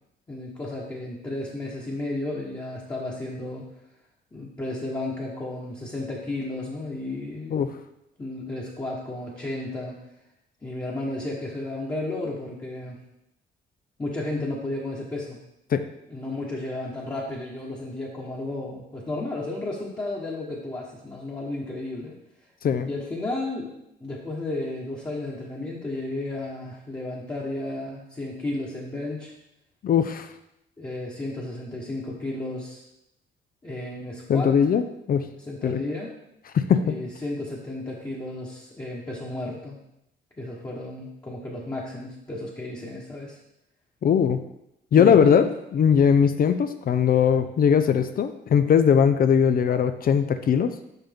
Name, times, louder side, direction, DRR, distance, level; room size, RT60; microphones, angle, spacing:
voice 1, 0.3-3.7 4.3-7.6 8.2-10.0 10.6-13.0 14.0-15.4 16.1-22.1 22.8-23.7 24.0-29.3 30.8-32.8 33.6-34.5 35.4-36.1 36.8-39.8 40.4-43.4 44.9-45.4, left 2 dB, 20° left, -6 dB, 1.2 m, -33 dB
voice 2, 29.8-30.3 34.3-34.8 35.1-35.3 35.6-35.8 36.5-37.0 44.0-44.4 44.9-45.4 45.7-50.7, left 7 dB, 45° left, 10 dB, 0.5 m, -20 dB
5.8 x 5.4 x 3.6 m, 0.84 s
cardioid pair, 90°, 20 cm